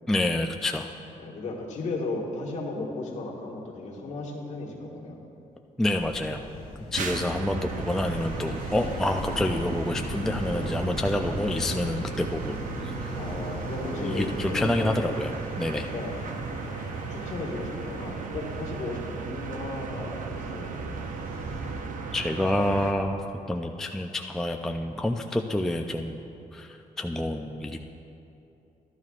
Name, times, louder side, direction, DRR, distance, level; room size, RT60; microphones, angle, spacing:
voice 1, 0.1-0.9 5.8-6.4 6.9-12.6 12.8-13.1 14.0-15.3 15.6-15.9 22.1-23.2 23.5-26.2 26.5-27.8, left 1 dB, 5° left, 3 dB, 0.3 m, -28 dB
voice 2, 1.2-5.2 7.0-7.6 10.4-10.8 13.1-15.0 15.7-16.2 17.1-20.7, left 2 dB, 55° left, -2 dB, 1.6 m, -35 dB
sound 1, 5.8-21.8, left 1 dB, 35° left, 1.5 m, -39 dB
sound 2, 6.9-22.9, right 4 dB, 65° right, 0.7 m, -35 dB
13.0 x 12.5 x 2.4 m, 2.8 s
cardioid pair, 150°, 14 cm